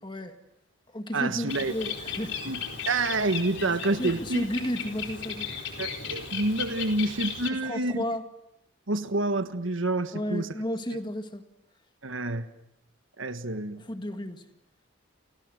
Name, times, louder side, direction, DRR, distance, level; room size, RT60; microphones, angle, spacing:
voice 1, 0.0-0.4 0.9-2.4 4.0-5.6 7.6-8.2 10.1-11.4 13.8-14.4, equal, 25° left, 1.9 m, -33 dB
voice 2, 1.1-1.7 2.4-2.6 2.9-4.5 5.8-8.0 8.9-10.5 10.9-11.0 12.0-12.5 13.2-13.8, right 2 dB, 80° right, 1.5 m, -28 dB
Bird, 1.5-7.5, left 6 dB, 65° left, 4.3 m, -36 dB
29.5 x 29.5 x 6.5 m
head